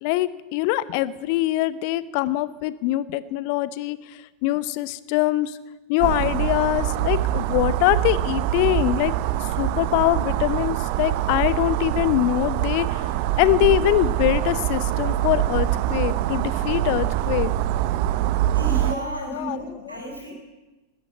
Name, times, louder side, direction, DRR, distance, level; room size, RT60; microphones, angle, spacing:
voice 1, 0.0-4.0 4.4-5.5 5.9-9.1 9.6-12.9 13.4-17.5 19.3-20.0, left 15 dB, 45° left, 16 dB, 1.0 m, -23 dB
sound 1, 6.0-18.9, right 13 dB, 45° right, 1.0 m, -24 dB
voice 2, 18.5-20.3, right 1 dB, 85° right, 0 dB, 7.9 m, -32 dB
20.0 x 14.0 x 9.1 m, 1.1 s
figure-of-eight pair, 90°, 0 cm